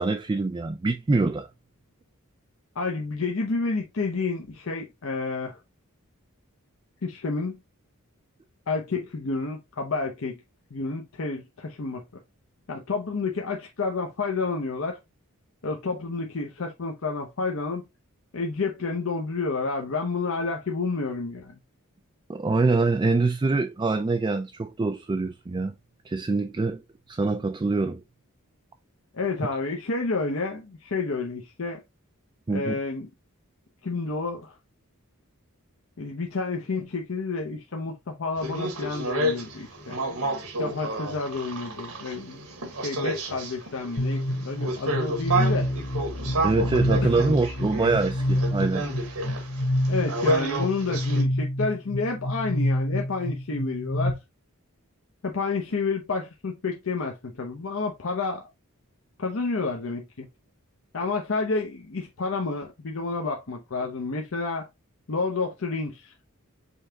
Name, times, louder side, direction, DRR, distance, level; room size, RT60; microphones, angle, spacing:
voice 1, 0.0-1.5 22.3-25.7 26.1-26.8 27.1-28.0 32.5-32.8 46.4-48.8, right 3 dB, 20° right, 0.3 m, -25 dB
voice 2, 2.8-5.6 7.0-7.6 8.7-10.4 10.7-12.0 12.7-15.0 15.6-17.9 18.3-21.5 29.1-31.8 32.5-33.1 33.8-34.6 36.0-40.0 40.6-45.7 47.0-47.2 49.9-54.2 55.2-58.4 59.2-60.3 60.9-64.7 65.1-66.1, left 3 dB, 65° left, 0.7 m, -30 dB
sound 1, 38.4-51.2, right 1 dB, 85° right, 1.5 m, -30 dB
sound 2, 44.0-54.1, left 1 dB, 35° left, 1.4 m, -27 dB
5.5 x 3.4 x 2.8 m
head